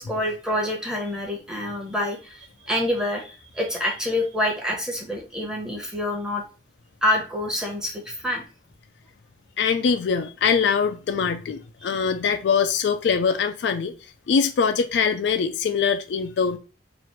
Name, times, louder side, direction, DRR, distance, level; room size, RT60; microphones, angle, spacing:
voice 1, 0.0-6.4 7.0-8.4 11.8-11.9, left 1 dB, 5° right, 0.9 m, -27 dB
voice 2, 9.6-13.9 14.3-16.6, left 6 dB, 75° left, 0.3 m, -23 dB
3.1 x 2.5 x 4.3 m
head